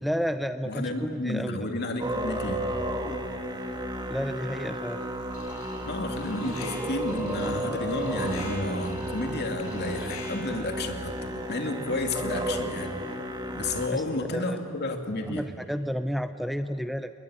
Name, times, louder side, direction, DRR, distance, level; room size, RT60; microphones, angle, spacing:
voice 1, 0.0-1.6 4.1-5.0 13.9-14.0 14.3-14.6 15.3-17.1, equal, ahead, 9 dB, 0.6 m, -31 dB
voice 2, 0.7-2.7 5.9-11.1 11.5-13.2 13.5-15.4, left 2 dB, 50° left, 4 dB, 2.5 m, -31 dB
Musical instrument, 2.0-13.9, right 1 dB, 20° right, 1.9 m, -33 dB
Alarm, 5.3-5.9 6.2-10.6, left 2 dB, 80° left, 5.7 m, -44 dB
29.0 x 20.5 x 9.9 m, 2.8 s
head